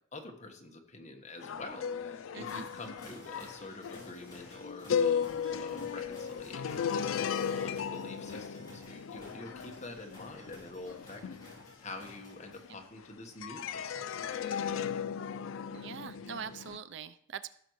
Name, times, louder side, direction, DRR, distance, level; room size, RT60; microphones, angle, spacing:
voice 1, 0.1-7.3 7.5-11.2 11.8-14.8, left 2 dB, 35° left, 3 dB, 1.2 m, -47 dB
sound 1, 1.4-13.0 13.4-16.8, left 7 dB, 85° left, 0.4 m, -36 dB
voice 2, 2.3-2.7 12.7-12.8 15.7-17.5, right 7 dB, 65° right, 13 dB, 0.5 m, -43 dB
sound 2, 2.4-12.8, left 1 dB, 20° left, 3.1 m, -54 dB
15.5 x 6.7 x 3.1 m, 0.66 s
head